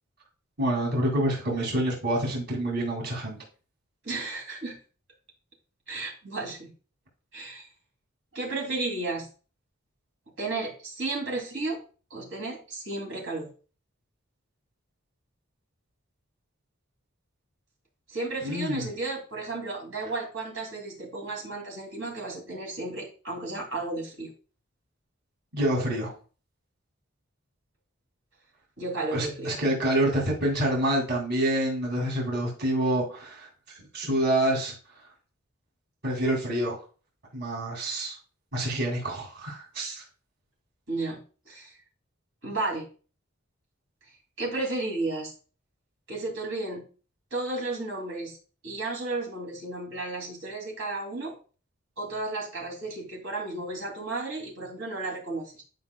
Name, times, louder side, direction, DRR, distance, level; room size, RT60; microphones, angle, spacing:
voice 1, 0.6-3.4 18.4-18.9 25.5-26.1 29.1-33.5 33.9-34.7 36.0-36.8 37.3-38.2 38.5-40.0, right 1 dB, 55° right, -2 dB, 2.4 m, -27 dB
voice 2, 4.0-4.8 5.9-6.7 7.3-7.7 8.3-9.3 10.4-11.8 12.1-13.5 18.1-24.3 28.8-29.6 40.9-41.7 42.4-42.9 44.4-45.3 46.1-46.8 47.3-48.4 48.6-51.3 52.0-55.6, right 2 dB, 75° right, -1 dB, 2.5 m, -33 dB
10.5 x 5.5 x 2.2 m, 0.37 s
head